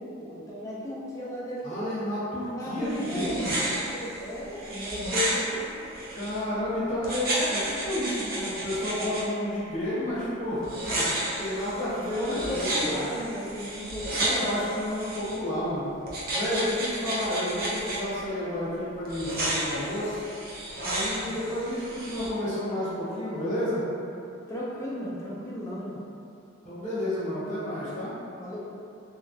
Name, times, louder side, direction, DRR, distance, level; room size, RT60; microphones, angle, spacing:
voice 1, 0.0-1.9 2.5-5.8 12.2-14.6 20.8-21.3 24.5-26.0 28.4-28.6, left 1 dB, 15° left, -7 dB, 0.4 m, -35 dB
voice 2, 1.6-3.6 6.1-13.1 14.0-15.9 16.3-20.2 20.8-23.8 26.6-28.1, left 1 dB, 35° left, -11 dB, 1.0 m, -31 dB
sound 1, 2.8-6.4 7.0-9.2 10.6-15.4 16.1-18.0 19.0-22.3, right 1 dB, 45° right, 0.5 m, -32 dB
2.8 x 2.4 x 2.6 m, 2.6 s
head